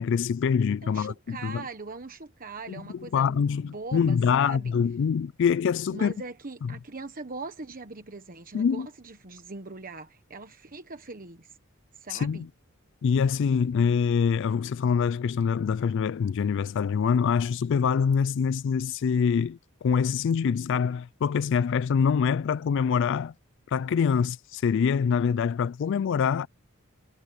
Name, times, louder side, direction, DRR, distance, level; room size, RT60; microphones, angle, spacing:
voice 1, 0.0-1.6 2.7-6.1 8.5-8.9 12.1-12.5 13.0-23.3 23.7-26.5, left 6 dB, 60° left, 0.3 m, -25 dB
voice 2, 0.8-4.8 5.9-11.6 11.9-12.5, right 3 dB, 40° right, 1.2 m, -41 dB
head